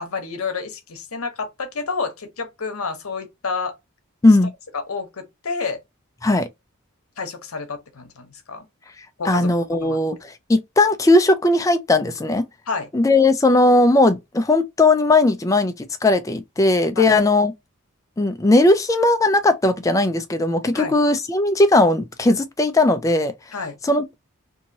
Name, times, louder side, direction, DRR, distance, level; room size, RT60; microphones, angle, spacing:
voice 1, 0.0-3.7 4.7-5.8 7.2-8.7 9.2-10.0 12.7-12.9 17.0-17.2 20.7-21.0 23.5-23.8, left 4 dB, 75° left, 0.8 m, -29 dB
voice 2, 9.3-12.4 12.9-17.5 18.2-23.3 23.8-24.2, left 2 dB, 15° left, 0.3 m, -18 dB
2.8 x 2.7 x 2.7 m
head